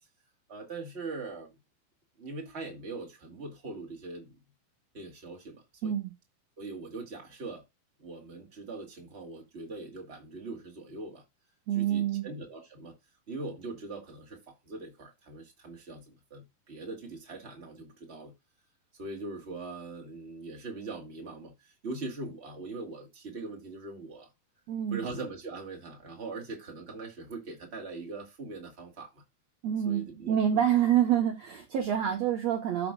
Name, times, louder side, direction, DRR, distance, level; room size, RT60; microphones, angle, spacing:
voice 1, 0.5-1.5 2.2-4.4 4.9-5.9 6.6-7.6 8.0-11.2 11.7-12.9 13.3-18.3 19.0-24.3 24.9-29.2 29.8-30.4, right 3 dB, 25° right, 1.7 m, -41 dB
voice 2, 5.8-6.1 11.7-12.3 24.7-25.0 29.6-32.9, right 10 dB, 80° right, 1.5 m, -27 dB
12.5 x 5.8 x 2.4 m
omnidirectional pair, 4.6 m